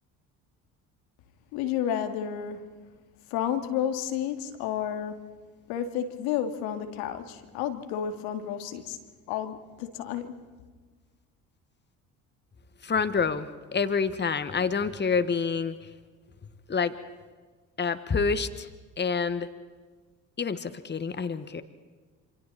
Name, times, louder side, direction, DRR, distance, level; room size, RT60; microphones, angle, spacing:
voice 1, 1.5-2.7 3.3-5.2 5.7-9.0 9.3-10.4, left 9 dB, 75° left, 8 dB, 2.4 m, -31 dB
voice 2, 12.8-15.7 16.7-16.9 17.8-18.7 19.0-19.5 20.4-21.6, left 5 dB, 30° left, 12 dB, 1.7 m, -27 dB
28.0 x 27.0 x 4.3 m, 1.4 s
hypercardioid pair, 65°, 37 cm